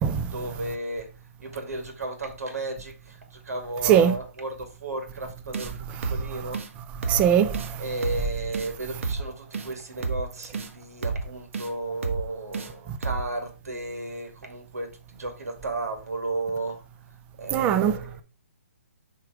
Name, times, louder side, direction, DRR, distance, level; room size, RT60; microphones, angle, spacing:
voice 1, 0.2-1.1 1.4-6.6 7.8-16.8 17.4-18.2, right 2 dB, 85° right, 2.4 m, -34 dB
sound 1, 5.5-5.7 6.0-6.2 6.5-6.7 7.0-7.2 7.5-7.7 8.0-8.2 8.5-8.7 9.0-9.2 9.5-9.7 10.0-10.2 10.5-10.7 11.0-11.2 11.5-11.7 12.0-12.2 12.5-12.7 13.0-13.2, right 4 dB, 55° right, 1.2 m, -30 dB
voice 2, 7.1-7.5 17.5-18.2, right 9 dB, 15° right, 0.5 m, -20 dB
6.5 x 3.8 x 4.9 m
hypercardioid pair, 155°, 8 cm